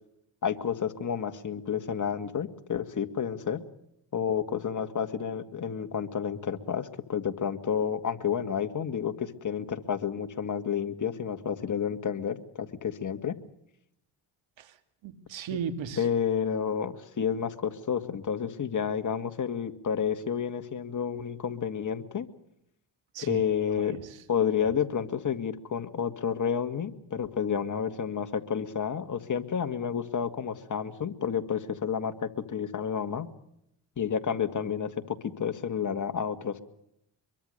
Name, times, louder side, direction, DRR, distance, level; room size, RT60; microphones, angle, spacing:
voice 1, 0.4-3.6 4.1-13.4 16.0-22.3 23.2-24.0 24.3-33.3 34.0-36.6, left 7 dB, 40° left, 8 dB, 2.1 m, -30 dB
voice 2, 14.6-16.1 23.1-23.4 23.8-24.2 24.6-24.7, right 7 dB, 75° right, 10 dB, 2.5 m, -37 dB
24.5 x 23.0 x 6.7 m, 0.78 s
cardioid pair, 95°, 46 cm